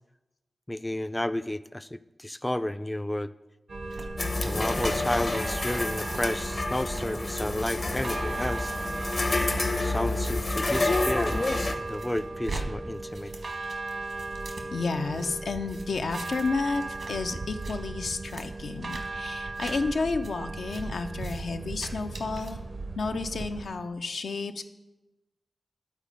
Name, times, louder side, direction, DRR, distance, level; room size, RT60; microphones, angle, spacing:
voice 1, 0.7-3.3 4.4-8.7 9.8-11.4 11.9-13.3, left 1 dB, 15° left, 12 dB, 0.3 m, -32 dB
sound 1, 3.7-23.7, right 3 dB, 70° right, 0.6 m, -37 dB
sound 2, 3.9-4.5 4.8-4.9 5.3-5.6 6.1-6.2 6.8-7.0 7.7-11.3 11.6-12.6 12.9-15.3 15.7-16.5 16.8-17.1 17.4-17.8 18.2-18.4 18.9-19.0 19.5-19.8 20.2-20.3 20.7-20.8 21.2-21.4 21.7-22.5, right 3 dB, 85° right, 1.2 m, -43 dB
sound 3, 4.2-11.8, left 2 dB, 55° left, 0.8 m, -29 dB
voice 2, 14.7-22.6 23.0-24.6, left 4 dB, 85° left, 6 dB, 0.5 m, -31 dB
11.0 x 4.1 x 5.1 m, 1.0 s
cardioid pair, 50°, 0 cm